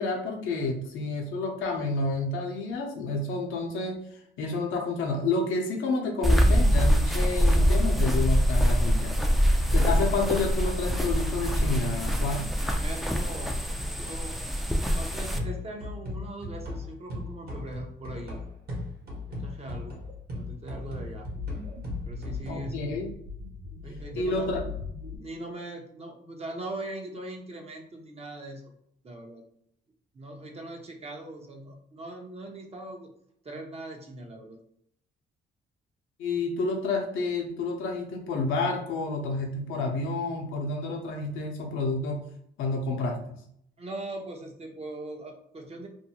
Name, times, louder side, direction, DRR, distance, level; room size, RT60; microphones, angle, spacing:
voice 1, 0.0-4.0 4.4-9.2 9.7-12.5 22.5-23.1 24.1-24.6 36.2-42.2 42.6-43.4, left 3 dB, 85° left, 1 dB, 0.7 m, -29 dB
sound 1, 6.2-15.4, equal, ahead, 0.4 m, -24 dB
sound 2, 10.8-12.8 13.4-13.9 15.4-22.5, left 2 dB, 50° right, 1.1 m, -38 dB
voice 2, 12.8-14.5 14.9-18.4 19.3-20.0 20.4-21.3 22.1-22.9 23.8-24.8 25.2-28.7 29.0-29.4 30.1-33.1 33.4-34.6 43.8-45.9, right 1 dB, 30° right, 2 dB, 0.7 m, -40 dB
sound 3, 20.0-25.2, left 4 dB, 80° right, 0.7 m, -40 dB
2.6 x 2.2 x 2.8 m, 0.70 s
cardioid pair, 90°, 20 cm